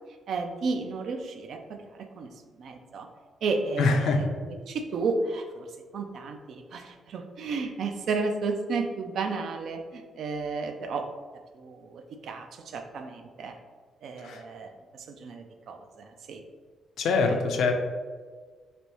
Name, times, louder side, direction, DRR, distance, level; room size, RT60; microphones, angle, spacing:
voice 1, 0.3-1.9 2.2-2.3 2.6-3.1 3.4-5.7 5.9-11.1 11.5-13.6 14.0-14.7 15.1-16.4 17.3-17.4, right 4 dB, 65° right, 5 dB, 0.4 m, -32 dB
voice 2, 3.8-4.2 14.2-14.4 17.0-17.7, left 4 dB, 75° left, 4 dB, 0.4 m, -23 dB
3.3 x 2.6 x 2.9 m, 1.5 s
cardioid pair, 90°, 0 cm